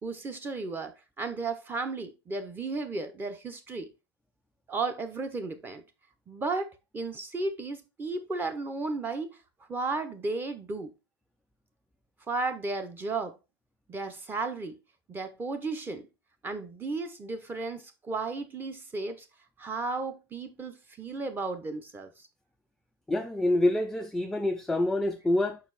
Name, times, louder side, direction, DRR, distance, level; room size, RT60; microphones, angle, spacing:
voice 1, 0.0-3.9 4.7-5.8 6.3-9.3 9.7-10.9 12.3-13.4 13.9-14.8 15.1-16.1 16.4-19.2 19.6-22.1, right 3 dB, 15° right, 1.1 m, -34 dB
voice 2, 23.1-25.6, left 1 dB, 5° left, 0.4 m, -26 dB
6.1 x 4.5 x 4.2 m
hypercardioid pair, 120°, 12 cm